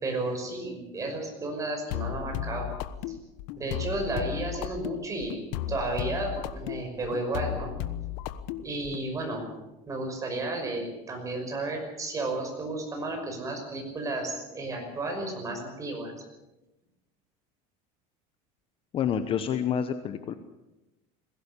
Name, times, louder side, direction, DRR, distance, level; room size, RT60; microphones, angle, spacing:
voice 1, 0.0-2.7 3.6-5.4 5.7-7.7 8.6-9.4 9.9-16.1, right 2 dB, 20° right, 2 dB, 5.9 m, -32 dB
sound 1, 1.9-9.1, left 12 dB, 70° left, 1.2 m, -35 dB
voice 2, 18.9-20.3, left 8 dB, 30° left, 10 dB, 1.0 m, -28 dB
21.0 x 17.0 x 8.4 m, 1.0 s
cardioid pair, 165°, 18 cm